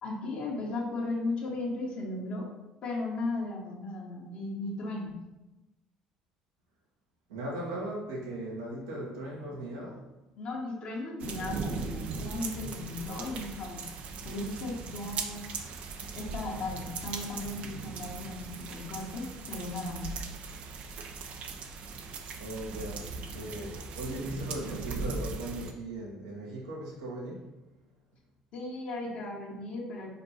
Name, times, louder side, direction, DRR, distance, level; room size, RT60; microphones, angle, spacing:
voice 1, 0.0-2.5 2.8-5.1 10.3-13.8 14.2-15.5 16.1-20.1 28.5-30.1, left 2 dB, 60° left, -3 dB, 1.6 m, -36 dB
voice 2, 7.3-10.0 22.4-23.0 23.3-27.5, right 1 dB, 90° right, -4 dB, 1.9 m, -38 dB
sound 1, 11.2-25.7, right 4 dB, 60° right, 0.8 m, -39 dB
5.1 x 4.5 x 4.3 m, 1.0 s
hypercardioid pair, 70°, 3 cm